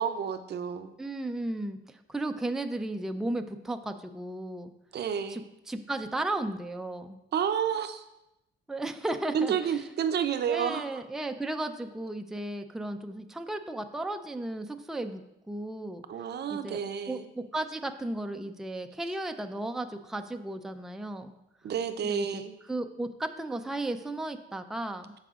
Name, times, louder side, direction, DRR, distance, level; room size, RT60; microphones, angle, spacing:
voice 1, 0.0-0.9 4.9-5.4 7.3-8.0 9.3-11.0 16.1-17.3 21.6-22.5, right 8 dB, 55° right, 9 dB, 0.6 m, -30 dB
voice 2, 1.0-4.7 5.3-7.2 8.7-9.8 10.5-15.2 15.5-16.0 16.5-16.8 17.1-21.3 22.0-22.4 22.7-25.1, right 2 dB, ahead, 6 dB, 0.5 m, -34 dB
12.5 x 4.9 x 2.5 m, 0.88 s
cardioid pair, 90°, 20 cm